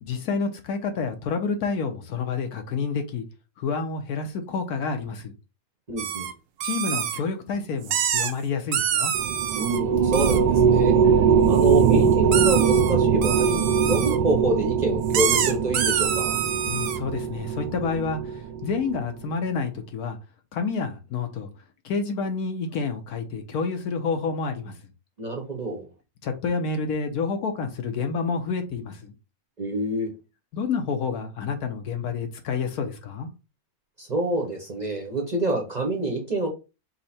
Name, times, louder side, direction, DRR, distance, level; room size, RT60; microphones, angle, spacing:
voice 1, 0.0-3.2 3.6-5.3 6.6-9.1 16.6-20.2 20.5-21.5 21.8-24.7 26.2-29.1 30.5-33.3, left 5 dB, 70° left, 1.2 m, -29 dB
voice 2, 5.9-6.3 9.5-11.0 11.5-16.4 25.2-25.9 29.6-30.1 34.0-36.5, right 2 dB, 40° right, 0.7 m, -27 dB
sound 1, 6.0-6.3 6.6-7.2 7.8-8.3 8.7-9.8 10.1-10.4 11.5-11.8 12.3-12.9 13.2-14.2 15.1-17.0, right 9 dB, 70° right, 0.8 m, -26 dB
sound 2, 9.1-18.9, right 7 dB, 85° right, 1.2 m, -22 dB
5.5 x 2.1 x 4.1 m
omnidirectional pair, 1.8 m